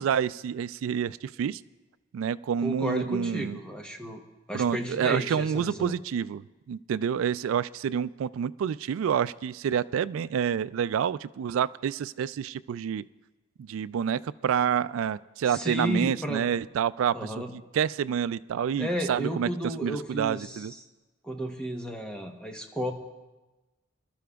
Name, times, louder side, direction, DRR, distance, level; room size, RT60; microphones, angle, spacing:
voice 1, 0.0-1.6 2.1-3.6 4.5-13.0 13.6-17.3 17.7-19.5 19.8-20.7, right 8 dB, 90° right, 16 dB, 0.3 m, -28 dB
voice 2, 2.6-4.2 4.5-6.0 15.4-16.4 17.1-17.5 18.8-20.8 21.2-22.9, right 1 dB, 5° left, 2 dB, 0.9 m, -33 dB
25.5 x 12.5 x 2.3 m, 1.1 s
head